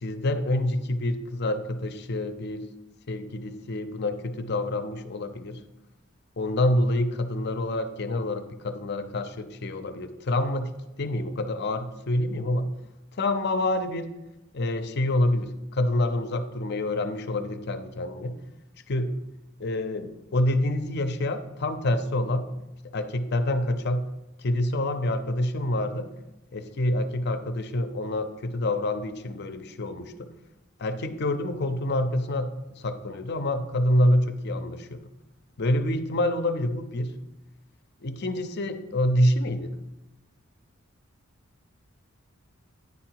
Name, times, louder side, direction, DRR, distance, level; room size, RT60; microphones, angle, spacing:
voice 1, 0.0-2.7 3.1-5.6 6.4-12.7 13.2-14.1 14.5-18.4 18.9-19.2 19.6-22.5 22.9-24.1 24.4-26.1 26.5-30.3 30.8-35.0 35.6-37.2 38.0-39.7, left 1 dB, 50° left, 9 dB, 0.6 m, -27 dB
9.6 x 4.8 x 4.6 m, 0.98 s
head